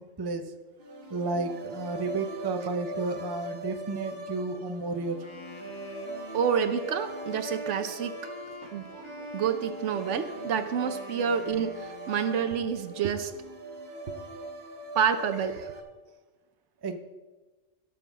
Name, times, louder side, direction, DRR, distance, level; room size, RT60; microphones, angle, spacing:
voice 1, 0.2-0.5 1.1-5.2 16.8-17.0, right 3 dB, 25° right, 6 dB, 0.5 m, -32 dB
sound 1, 0.8-15.8, right 2 dB, 50° right, 1.5 m, -41 dB
Wind instrument woodwind instrument, 5.1-12.8, left 2 dB, 25° left, 1.1 m, -45 dB
voice 2, 6.3-8.2 8.6-13.3 14.9-15.8, right 7 dB, 70° right, 10 dB, 1.0 m, -29 dB
18.0 x 6.0 x 3.6 m, 1.2 s
omnidirectional pair, 1.3 m